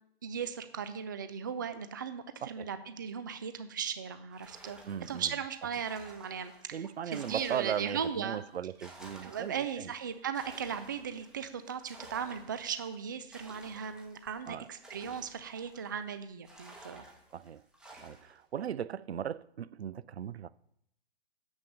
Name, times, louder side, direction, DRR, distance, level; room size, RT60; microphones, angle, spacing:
voice 1, 0.2-4.8 5.1-8.4 9.2-17.0, right 7 dB, 20° right, 0.3 m, -37 dB
sound 1, 4.3-8.2 8.5-16.1 16.5-18.4, right 2 dB, ahead, 1.0 m, -54 dB
voice 2, 4.9-5.3 6.7-9.9 14.5-14.7 17.3-17.6 18.0-20.5, right 9 dB, 70° right, 0.5 m, -37 dB
7.1 x 6.5 x 7.1 m
figure-of-eight pair, 130°, 33 cm